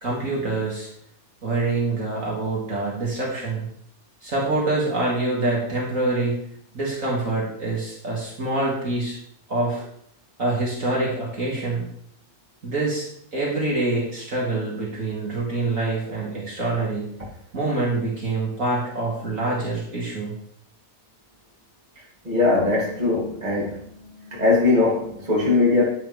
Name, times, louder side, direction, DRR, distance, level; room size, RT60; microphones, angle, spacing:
voice 1, 0.0-0.9 1.4-3.7 4.2-6.4 6.7-9.1 9.5-9.8 10.4-11.8 12.6-13.1 13.3-17.1 17.5-20.3, right 2 dB, 55° right, -4 dB, 3.1 m, -25 dB
voice 2, 22.2-23.8 24.2-25.8, left 3 dB, 25° right, -5 dB, 3.3 m, -20 dB
10.5 x 10.5 x 3.6 m, 0.67 s
omnidirectional pair, 1.7 m